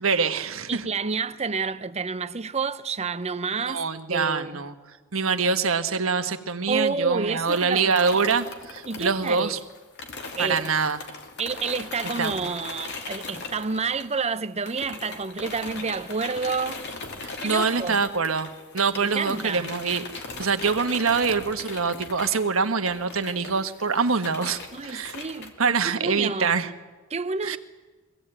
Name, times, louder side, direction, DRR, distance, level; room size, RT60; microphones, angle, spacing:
voice 1, 0.0-0.8 3.7-4.7 5.1-9.6 10.4-11.0 12.2-12.5 17.2-18.5 18.7-20.0 20.4-25.1 25.6-26.7 27.4-27.6, right 5 dB, 70° right, 1.3 m, -25 dB
voice 2, 0.7-3.8 4.1-4.6 6.7-8.3 8.9-9.5 10.3-10.7 11.4-16.8 17.4-18.0 19.0-19.7 24.7-26.6 27.1-27.6, right 4 dB, 30° right, 0.7 m, -29 dB
sound 1, 7.5-14.4 14.7-25.5, left 3 dB, 55° left, 2.7 m, -39 dB
23.5 x 16.5 x 8.9 m
head